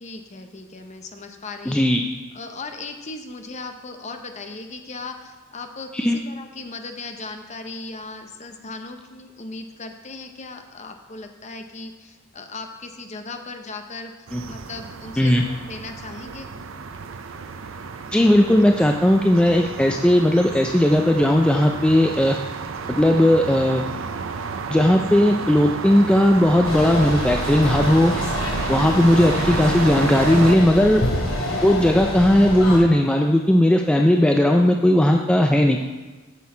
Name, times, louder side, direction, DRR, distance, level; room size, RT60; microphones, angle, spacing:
voice 1, 0.0-1.8 2.3-14.1 14.5-16.5 28.8-29.2, left 3 dB, 35° left, 6 dB, 0.7 m, -37 dB
voice 2, 1.7-2.0 5.9-6.2 14.3-14.4 15.2-15.4 18.1-22.4 22.9-23.8 24.7-28.1 28.7-31.0 31.6-35.8, left 1 dB, 5° left, 2 dB, 0.3 m, -17 dB
sound 1, 14.3-30.6, right 5 dB, 65° right, 0.5 m, -31 dB
sound 2, 26.6-32.8, left 1 dB, 70° left, 2.5 m, -27 dB
9.3 x 6.2 x 4.3 m, 1.3 s
head